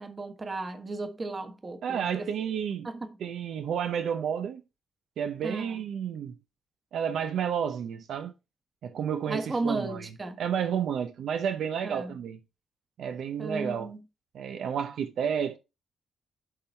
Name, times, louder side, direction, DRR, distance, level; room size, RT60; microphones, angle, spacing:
voice 1, 0.0-2.3 2.8-3.2 5.4-5.8 9.3-10.4 11.8-12.1 13.4-14.0, right 2 dB, 25° right, 1.3 m, -34 dB
voice 2, 1.8-2.9 3.2-4.6 5.2-6.4 6.9-8.3 8.8-10.1 10.4-12.4 13.0-13.9 14.3-15.6, right 8 dB, 75° right, 0.8 m, -31 dB
11.0 x 3.8 x 4.5 m
cardioid pair, 125°, 0 cm